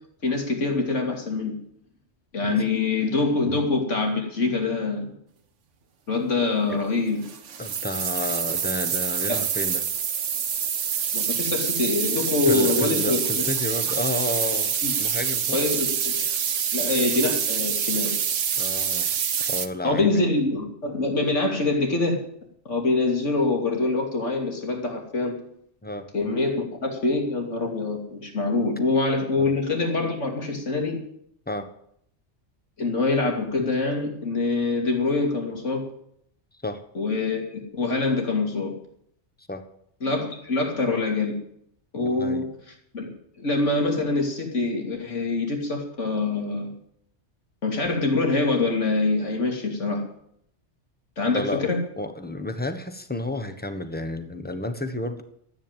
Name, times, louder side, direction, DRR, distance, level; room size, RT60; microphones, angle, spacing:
voice 1, 0.2-1.6 2.3-5.1 6.1-7.2 9.3-9.4 11.1-13.4 14.8-14.9 15.5-16.2 16.7-18.1 19.8-22.3 22.7-25.3 26.1-31.0 32.8-35.8 36.9-38.7 40.0-41.3 41.9-42.5 42.9-43.1 43.4-46.7 47.6-50.1 51.2-51.8, left 3 dB, 90° left, 2 dB, 3.1 m, -25 dB
sound 1, 7.2-19.7, right 7 dB, 80° right, 1.3 m, -26 dB
voice 2, 7.6-9.9 12.5-14.7 15.0-15.6 18.6-19.1 19.5-20.1 25.8-26.1 29.4-29.5 31.5-31.7 36.6-36.8 39.5-39.6 42.0-42.5 51.3-55.2, left 2 dB, 10° left, 8 dB, 1.3 m, -31 dB
13.5 x 9.1 x 9.1 m, 0.69 s
omnidirectional pair, 1.2 m